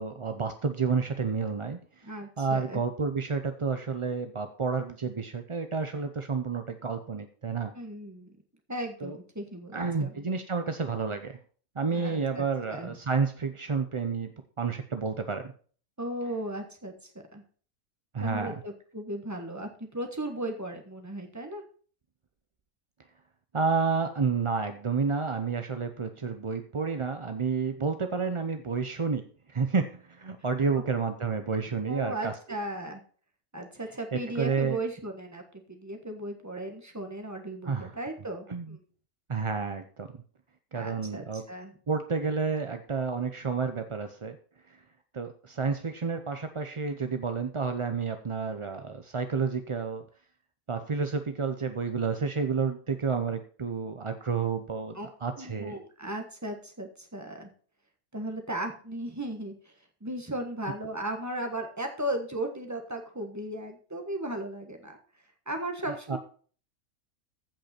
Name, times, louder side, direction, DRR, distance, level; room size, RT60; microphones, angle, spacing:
voice 1, 0.0-1.8 2.4-7.7 9.0-9.2 9.7-11.4 11.8-14.3 14.6-15.5 18.1-18.5 23.5-32.3 34.1-34.8 37.6-37.9 38.5-38.8 39.3-40.1 40.7-41.4 41.9-44.4 45.1-50.0 50.7-55.7 65.9-66.2, right 5 dB, 40° right, 7 dB, 0.4 m, -30 dB
voice 2, 2.0-2.8 7.7-8.3 8.7-10.3 11.9-12.9 16.0-16.9 17.3-17.4 18.2-21.6 31.9-33.0 33.5-35.4 35.7-38.8 40.7-41.7 54.9-55.1 55.4-57.5 58.1-59.7 60.0-65.0 65.5-66.2, right 1 dB, 10° right, 3 dB, 1.3 m, -36 dB
14.5 x 5.4 x 4.3 m, 0.43 s
omnidirectional pair, 1.5 m